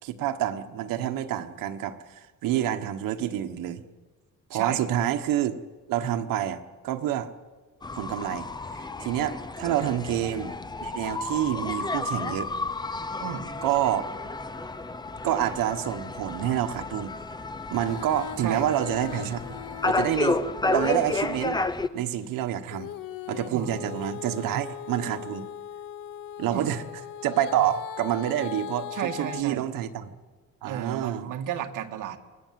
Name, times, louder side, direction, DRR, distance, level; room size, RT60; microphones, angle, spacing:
voice 1, 0.0-3.8 4.5-5.6 5.9-7.3 7.9-8.5 8.8-10.5 10.8-12.5 13.6-14.1 15.2-17.2 17.7-19.5 19.8-21.6 21.9-22.9 23.3-25.5 26.4-26.8 27.2-30.2 30.6-31.3, right 11 dB, 90° right, 8 dB, 1.4 m, -28 dB
voice 2, 4.5-4.9 9.8-10.1 13.2-13.5 18.4-18.7 23.5-23.8 26.5-26.7 28.9-29.6 30.6-32.2, right 9 dB, 70° right, 4 dB, 1.9 m, -33 dB
sound 1, 7.8-21.9, left 3 dB, 15° left, 0.6 m, -31 dB
Female singing, 17.7-21.5 22.7-29.4, left 10 dB, 75° left, 1.0 m, -40 dB
27.0 x 20.0 x 7.7 m, 1.4 s
cardioid pair, 150°, 33 cm